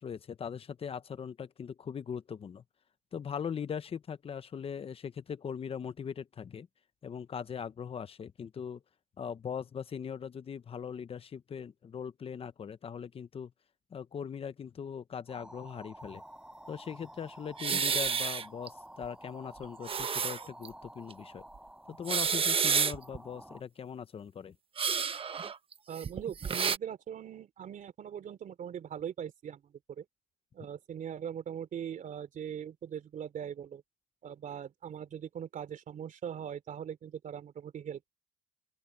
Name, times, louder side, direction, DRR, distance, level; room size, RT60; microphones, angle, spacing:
voice 1, 0.0-2.6 3.1-6.7 7.0-8.8 9.2-13.5 13.9-16.2 16.7-21.4 21.9-24.5, left 7 dB, 35° left, 0.9 m, -40 dB
sound 1, 15.3-23.6, right 1 dB, 5° right, 5.0 m, -51 dB
sound 2, 17.6-18.7 19.0-19.1 19.6-20.7 21.1-21.2 21.9-23.2 24.8-26.8, right 6 dB, 35° right, 1.1 m, -30 dB
voice 2, 25.9-29.6 30.0-30.1 30.5-33.8 34.2-38.0, right 8 dB, 50° right, 3.2 m, -41 dB
open air
cardioid pair, 110°, 17 cm